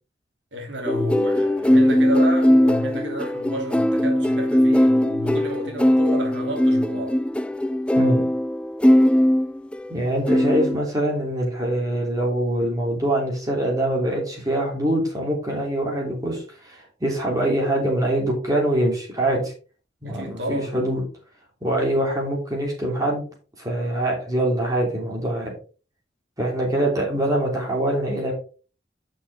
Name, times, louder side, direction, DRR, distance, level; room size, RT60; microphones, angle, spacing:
voice 1, 0.5-7.2 20.0-20.8 21.8-22.0, equal, 85° right, 2.9 m, -31 dB
sound 1, 0.9-9.9 10.3-10.8, equal, 5° left, 0.3 m, -19 dB
voice 2, 9.9-19.5 20.0-21.0 21.6-23.2 23.6-25.5 26.4-28.3, right 1 dB, 20° right, 3.0 m, -24 dB
9.5 x 6.3 x 3.5 m
head